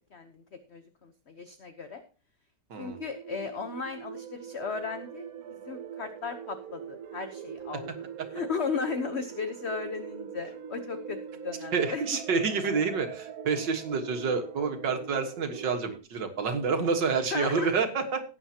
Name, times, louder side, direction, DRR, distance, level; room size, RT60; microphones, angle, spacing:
voice 1, 0.1-0.4 0.7-2.0 2.8-5.3 5.6-7.9 8.3-11.2 11.4-12.0 17.3-17.7, left 5 dB, 45° left, 8 dB, 1.1 m, -35 dB
voice 2, 2.7-3.0 11.7-18.2, right 5 dB, 75° right, 6 dB, 2.3 m, -28 dB
sound 1, 2.9-16.0, right 7 dB, 60° right, 1.2 m, -42 dB
17.5 x 9.0 x 2.9 m, 0.35 s
omnidirectional pair, 1.9 m